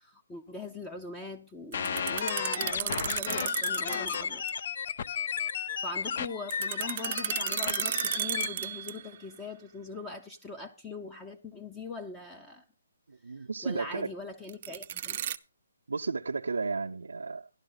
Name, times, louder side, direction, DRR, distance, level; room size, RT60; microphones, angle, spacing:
voice 1, 0.0-4.4 5.8-12.6 13.4-15.2, left 3 dB, 10° left, 0.8 m, -41 dB
sound 1, 1.7-8.5, left 7 dB, 50° left, 0.6 m, -33 dB
sound 2, 1.7-4.2 4.5-4.6 6.5-9.2 14.5-15.4, right 10 dB, 40° right, 0.6 m, -34 dB
voice 2, 13.1-14.1 15.9-17.5, right 4 dB, 90° right, 0.6 m, -33 dB
12.5 x 11.5 x 3.9 m
hypercardioid pair, 155°, 0 cm